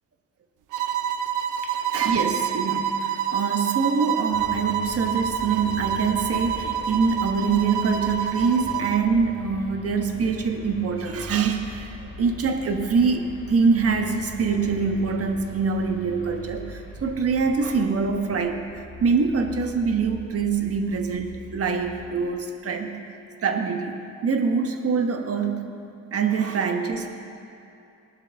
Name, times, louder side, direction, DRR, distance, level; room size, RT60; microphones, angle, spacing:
sound 1, 0.7-9.1, right 8 dB, 85° right, 0.7 m, -27 dB
voice 1, 1.6-18.6 19.0-23.0 23.4-25.7 26.1-27.1, right 5 dB, 50° right, 5 dB, 1.3 m, -24 dB
sound 2, 4.3-22.3, left 2 dB, 45° left, 2.9 m, -41 dB
19.0 x 11.0 x 3.5 m, 2.7 s
cardioid pair, 90°, 30 cm